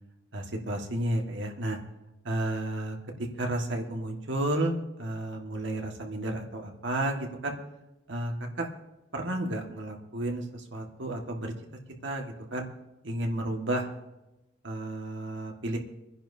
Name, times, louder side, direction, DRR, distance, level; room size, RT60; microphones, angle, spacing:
voice 1, 0.3-1.8 2.2-7.6 8.1-8.7 9.1-11.5 12.0-12.7 13.0-13.9 14.6-15.8, right 1 dB, 65° right, 1 dB, 1.8 m, -32 dB
26.0 x 10.5 x 2.8 m, 0.99 s
head